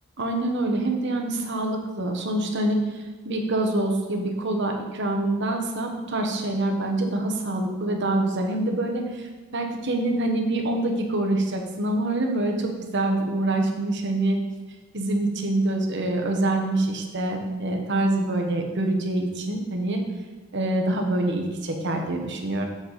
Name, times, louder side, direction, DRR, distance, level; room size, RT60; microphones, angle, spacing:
voice 1, 0.2-14.4 14.9-20.0 20.5-22.7, right 2 dB, 55° right, 3 dB, 1.1 m, -25 dB
7.3 x 6.8 x 4.1 m, 1.2 s
head